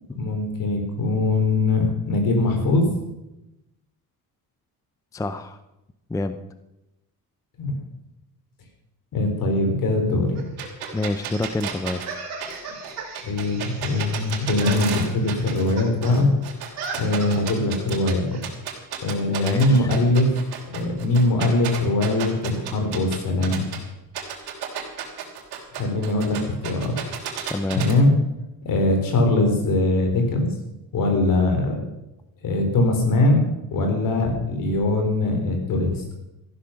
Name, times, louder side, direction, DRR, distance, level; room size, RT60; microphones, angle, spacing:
voice 1, 0.1-2.9 7.6-7.7 9.1-10.4 13.2-16.3 17.0-18.4 19.0-20.3 20.7-23.7 25.8-26.9 27.7-28.1 28.6-30.5 30.9-31.8 32.4-36.1, left 2 dB, 60° left, 4 dB, 4.1 m, -21 dB
voice 2, 5.1-5.6 6.1-6.4 10.9-12.0 19.3-19.9 27.5-27.9, left 2 dB, 10° left, 11 dB, 0.5 m, -27 dB
sound 1, 10.3-16.2 16.4-17.6 18.3-18.4, right 4 dB, 45° right, 4.4 m, -38 dB
sound 2, 10.6-15.7 16.0-18.1 18.4-23.8 24.1-27.9, right 9 dB, 85° right, 3.2 m, -32 dB
14.0 x 11.5 x 5.9 m, 0.92 s
cardioid pair, 145°, 37 cm